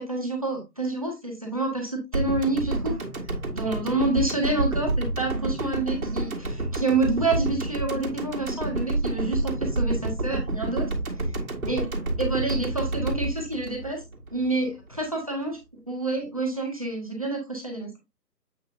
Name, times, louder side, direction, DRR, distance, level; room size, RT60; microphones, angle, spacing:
voice 1, 0.0-3.0 3.5-10.9 11.7-11.9 12.2-14.0 14.3-15.6 15.9-18.0, right 2 dB, 20° right, 1 dB, 1.3 m, -28 dB
sound 1, 2.1-14.5 14.8-14.9, right 2 dB, 55° right, 2.0 m, -29 dB
8.0 x 4.8 x 2.5 m, 0.21 s
figure-of-eight pair, 175°, 50 cm